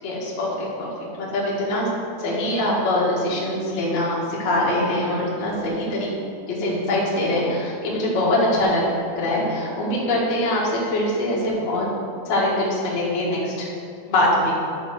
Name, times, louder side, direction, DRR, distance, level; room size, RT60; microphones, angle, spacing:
voice 1, 0.0-1.9 2.2-6.1 6.5-8.8 9.1-11.9 12.2-13.7 14.1-14.5, left 1 dB, 75° left, -6 dB, 1.5 m, -23 dB
11.0 x 4.3 x 6.5 m, 2.5 s
omnidirectional pair, 5.7 m